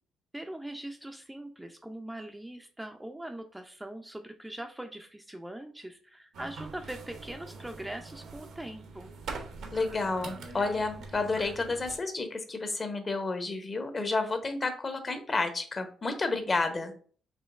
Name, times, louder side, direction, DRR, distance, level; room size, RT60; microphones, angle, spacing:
voice 1, 0.3-9.1, right 1 dB, 10° right, 4 dB, 0.4 m, -41 dB
sound 1, 6.3-12.0, right 4 dB, 75° right, 0.7 m, -43 dB
voice 2, 9.7-16.9, left 3 dB, 30° left, 7 dB, 0.8 m, -31 dB
5.0 x 2.9 x 2.4 m, 0.43 s
cardioid pair, 90°, 0 cm